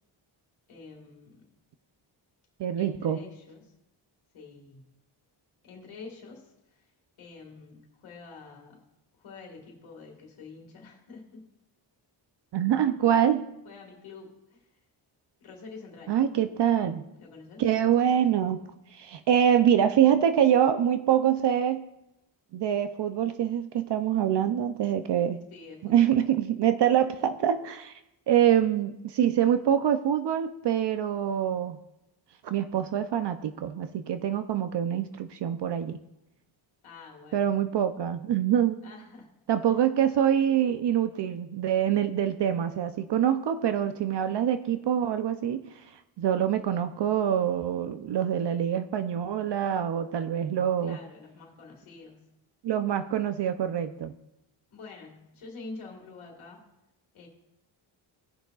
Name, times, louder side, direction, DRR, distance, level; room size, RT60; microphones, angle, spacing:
voice 1, 0.7-1.4 2.8-3.7 4.3-4.8 5.6-6.9 7.2-8.8 9.2-11.4 13.6-14.7 15.4-16.2 17.2-17.6 25.5-26.1 36.8-37.5 38.8-39.3 50.8-52.3 54.7-56.7 57.1-57.3, left 4 dB, 90° left, 0 dB, 1.9 m, -47 dB
voice 2, 2.6-3.2 12.5-13.4 16.1-17.0 17.6-18.6 18.9-21.8 22.5-25.4 25.8-27.9 28.3-31.8 32.4-36.0 37.3-38.8 39.5-45.8 46.2-51.0 52.6-54.1, right 9 dB, 60° right, 10 dB, 0.6 m, -25 dB
17.0 x 6.3 x 2.3 m, 0.89 s
cardioid pair, 90°, 47 cm